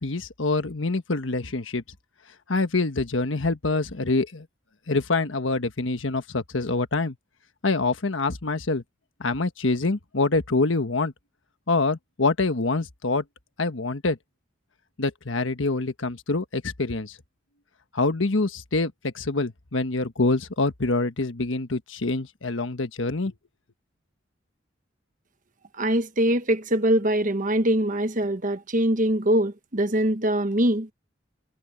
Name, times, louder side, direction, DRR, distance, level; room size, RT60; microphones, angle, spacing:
voice 1, 0.0-1.8 2.5-4.5 4.9-7.1 7.6-8.8 9.2-11.1 11.7-13.2 13.6-14.2 15.0-17.2 17.9-23.3, left 3 dB, 85° left, 1.3 m, -25 dB
voice 2, 25.7-30.9, right 1 dB, 45° right, 1.3 m, -23 dB
head